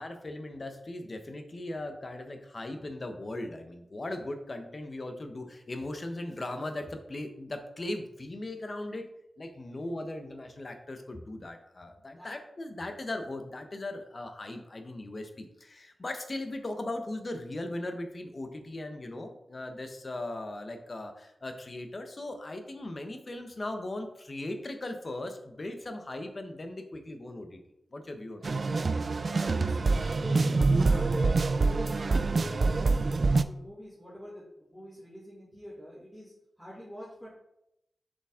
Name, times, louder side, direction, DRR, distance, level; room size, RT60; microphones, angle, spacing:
voice 1, 0.0-9.1 9.4-27.6 27.9-28.5, left 1 dB, 35° left, 6 dB, 0.9 m, -38 dB
sound 1, 28.4-33.4, right 3 dB, 45° right, 0.3 m, -26 dB
voice 2, 29.2-37.3, equal, ahead, -11 dB, 2.6 m, -43 dB
6.9 x 5.3 x 3.7 m, 0.83 s
wide cardioid pair, 130°, 0 cm